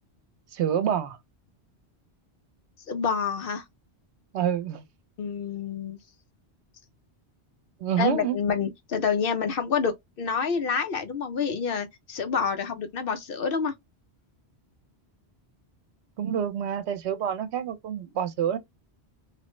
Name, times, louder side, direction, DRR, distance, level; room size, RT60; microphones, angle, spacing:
voice 1, 0.5-1.2 4.3-4.8 7.8-8.4 16.2-18.6, right 9 dB, 90° right, 0.9 m, -27 dB
voice 2, 2.9-3.6 5.2-6.0 8.0-13.7, left 6 dB, 65° left, 0.7 m, -28 dB
3.1 x 2.1 x 3.0 m
omnidirectional pair, 1.1 m